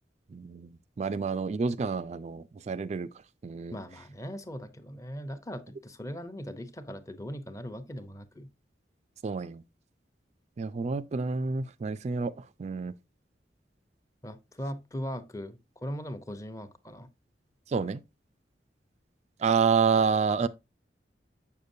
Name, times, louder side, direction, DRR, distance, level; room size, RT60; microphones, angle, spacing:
voice 1, 0.3-3.1 3.4-3.7 9.2-9.6 10.6-12.9 17.7-18.0 19.4-20.5, right 5 dB, 40° right, 0.3 m, -28 dB
voice 2, 3.7-8.5 14.2-17.1, equal, 20° left, 0.7 m, -39 dB
7.2 x 6.6 x 2.6 m
head